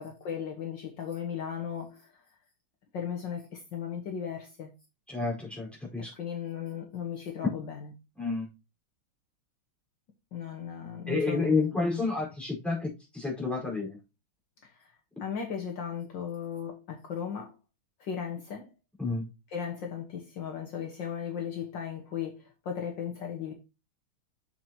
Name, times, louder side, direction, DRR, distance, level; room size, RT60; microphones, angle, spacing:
voice 1, 0.0-2.2 2.9-4.7 6.0-7.9 10.3-11.7 14.6-14.9 15.2-17.5 18.0-18.7 19.5-23.5, left 8 dB, 60° left, 1.9 m, -36 dB
voice 2, 5.1-6.1 8.2-8.4 11.1-14.0 19.0-19.3, left 3 dB, ahead, 4.5 m, -30 dB
7.4 x 7.1 x 2.9 m
omnidirectional pair, 2.3 m